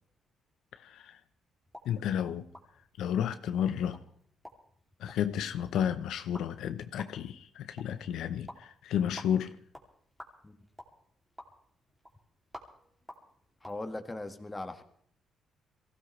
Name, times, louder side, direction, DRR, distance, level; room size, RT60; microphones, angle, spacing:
voice 1, 0.8-1.2 1.9-2.5 3.0-4.0 5.0-9.5, left 9 dB, 80° left, 0.7 m, -32 dB
sound 1, 1.6-13.8, equal, 5° right, 2.7 m, -53 dB
voice 2, 13.6-14.8, left 2 dB, 15° left, 1.6 m, -39 dB
23.0 x 16.0 x 3.2 m
cardioid pair, 90°, 0 cm